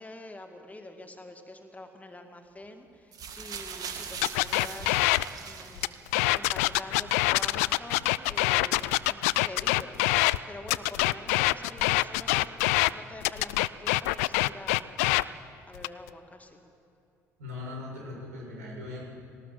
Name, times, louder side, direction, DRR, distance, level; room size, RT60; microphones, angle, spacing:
voice 1, 0.0-6.0 6.3-15.1 15.7-16.6, left 2 dB, 20° left, 5 dB, 2.4 m, -46 dB
sound 1, 3.1-6.4 7.3-7.4, right 6 dB, 50° right, 2.2 m, -40 dB
sound 2, 4.2-5.3 5.8-10.4 10.7-12.9 13.2-15.2 15.8-16.1, left 19 dB, 70° left, 0.4 m, -25 dB
voice 2, 17.4-19.0, left 2 dB, 80° right, -3 dB, 6.9 m, -39 dB
20.0 x 18.5 x 7.7 m, 2.8 s
figure-of-eight pair, 50°, 8 cm